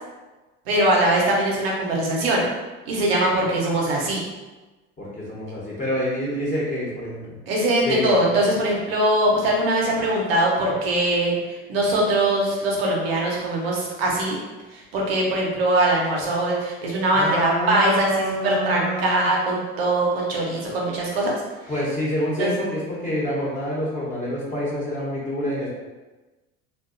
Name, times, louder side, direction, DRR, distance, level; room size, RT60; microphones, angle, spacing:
voice 1, 0.7-2.4 2.9-4.2 7.5-14.4 14.7-21.3 22.4-22.6, right 1 dB, 90° right, -2 dB, 0.7 m, -22 dB
voice 2, 5.0-7.4 7.8-8.1 17.1-19.3 21.7-25.7, equal, 25° left, -7 dB, 0.9 m, -27 dB
2.6 x 2.3 x 2.5 m, 1.2 s
hypercardioid pair, 80°, 29 cm